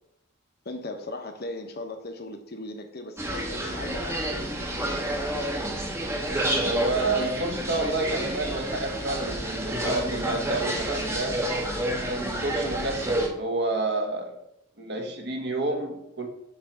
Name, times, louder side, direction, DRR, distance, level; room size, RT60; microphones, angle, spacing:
voice 1, 0.6-5.0, left 2 dB, 50° left, 1.0 m, -38 dB
sound 1, 3.2-13.3, right 1 dB, 15° right, 0.9 m, -29 dB
voice 2, 6.6-11.5 12.1-14.3 14.8-16.3, right 2 dB, 55° right, 1.4 m, -29 dB
8.3 x 3.3 x 6.0 m
head